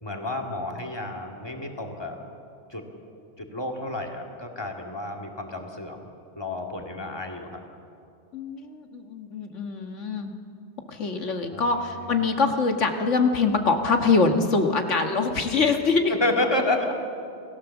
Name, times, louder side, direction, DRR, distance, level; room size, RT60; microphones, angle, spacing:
voice 1, 0.0-2.2 2.7-2.8 3.4-6.0 6.4-7.6 11.5-12.1 16.2-16.9, left 2 dB, 20° left, 2 dB, 2.3 m, -30 dB
voice 2, 8.3-10.3 10.9-16.1, left 4 dB, 80° left, 5 dB, 1.9 m, -24 dB
28.0 x 17.0 x 7.2 m, 2.6 s
omnidirectional pair, 1.2 m